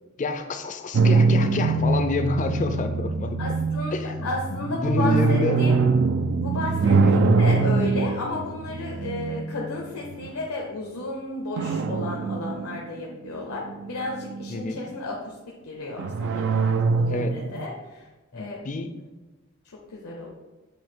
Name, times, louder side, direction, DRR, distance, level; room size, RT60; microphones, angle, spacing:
voice 1, 0.2-3.6 3.9-5.6 6.9-7.2 14.5-14.8 17.1-17.3 18.3-18.9, left 3 dB, 35° left, 7 dB, 0.4 m, -28 dB
sound 1, 0.9-10.3 11.6-13.1 13.5-14.6 16.0-17.6, right 4 dB, 55° right, 0.3 m, -23 dB
voice 2, 3.4-5.8 6.4-15.4 15.6-18.1 18.3-18.7 19.6-20.3, left 2 dB, 80° left, -2 dB, 0.8 m, -33 dB
7.9 x 2.7 x 4.4 m, 1.2 s
head